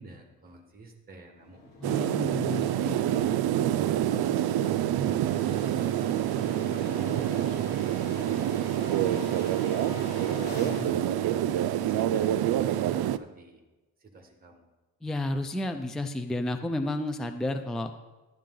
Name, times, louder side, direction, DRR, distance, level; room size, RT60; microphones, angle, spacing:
voice 1, 0.0-2.2 3.5-5.7 6.3-7.7 8.3-12.3 12.9-13.6 14.0-14.7, right 2 dB, 25° right, 3 dB, 1.6 m, -48 dB
sound 1, 1.4-13.2, left 3 dB, 25° left, 3.9 m, -44 dB
voice 2, 1.8-3.0 10.6-10.9 15.0-17.9, left 2 dB, ahead, 7 dB, 0.4 m, -32 dB
sound 2, 1.8-13.2, right 12 dB, 70° right, 0.5 m, -27 dB
12.0 x 10.5 x 3.8 m, 1.1 s
cardioid pair, 155°, 39 cm